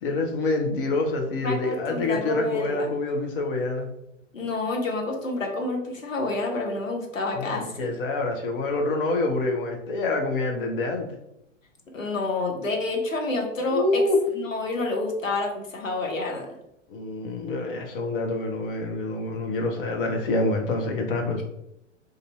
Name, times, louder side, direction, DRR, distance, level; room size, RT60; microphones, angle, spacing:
voice 1, 0.0-3.9 7.3-11.1 13.7-14.2 16.9-21.4, left 2 dB, 45° left, 2 dB, 0.8 m, -26 dB
voice 2, 1.4-2.9 4.3-7.9 11.9-14.0 14.3-16.5, left 2 dB, 85° left, 1 dB, 0.9 m, -28 dB
2.7 x 2.6 x 4.1 m, 0.82 s
figure-of-eight pair, 105°, 38 cm